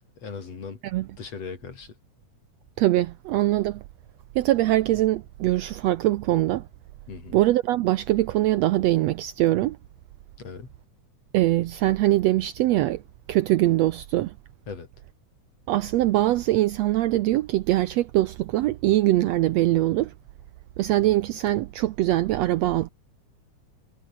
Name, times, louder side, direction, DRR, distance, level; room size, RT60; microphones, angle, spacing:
voice 1, 0.2-0.8 1.2-1.9 7.1-7.4 10.4-10.7 14.7-14.9, left 5 dB, 50° left, 4.4 m, -38 dB
voice 2, 2.8-3.8 4.3-6.6 7.3-9.8 11.3-13.0 13.3-14.3 15.7-20.1 20.8-22.9, right 15 dB, 80° right, 1.5 m, -22 dB
omnidirectional pair, 3.7 m